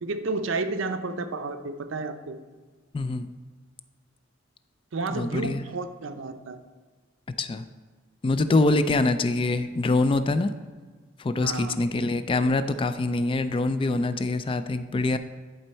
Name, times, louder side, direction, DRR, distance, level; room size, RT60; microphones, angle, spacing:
voice 1, 0.0-2.4 4.9-6.6 11.4-11.8, right 3 dB, 70° right, 9 dB, 0.6 m, -31 dB
voice 2, 2.9-3.3 5.1-5.7 7.4-7.6 8.2-10.5 11.2-15.2, left 2 dB, 25° left, 11 dB, 0.3 m, -24 dB
10.5 x 4.3 x 4.4 m, 1.4 s
head